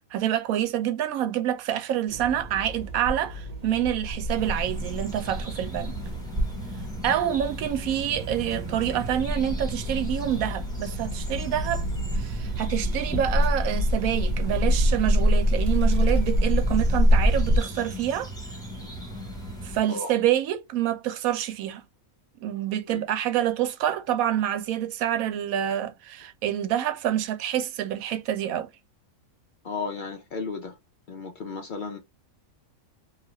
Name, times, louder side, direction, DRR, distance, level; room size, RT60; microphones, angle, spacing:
voice 1, 0.1-5.9 7.0-11.9 12.1-18.3 19.6-21.8 22.4-28.7, right 11 dB, 80° right, 1.0 m, -27 dB
sound 1, 2.1-17.6, equal, 40° right, 0.6 m, -26 dB
sound 2, 4.3-19.8, equal, 5° left, 0.7 m, -38 dB
voice 2, 29.6-30.8 31.1-32.0, left 4 dB, 85° left, 0.4 m, -34 dB
2.7 x 2.4 x 2.9 m
omnidirectional pair, 1.5 m